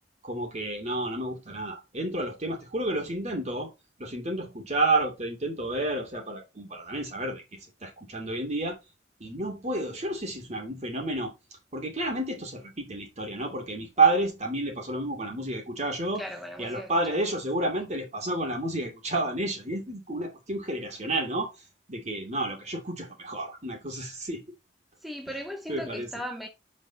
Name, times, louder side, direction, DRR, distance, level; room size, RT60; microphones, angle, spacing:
voice 1, 0.2-3.7 4.0-8.8 9.2-11.3 11.7-16.2 16.6-21.5 21.9-24.4 25.3-25.4 25.7-26.1, right 2 dB, 40° right, 2.6 m, -30 dB
voice 2, 16.1-16.9 17.2-17.4 25.0-26.5, equal, ahead, 0.8 m, -37 dB
7.9 x 5.4 x 4.1 m
head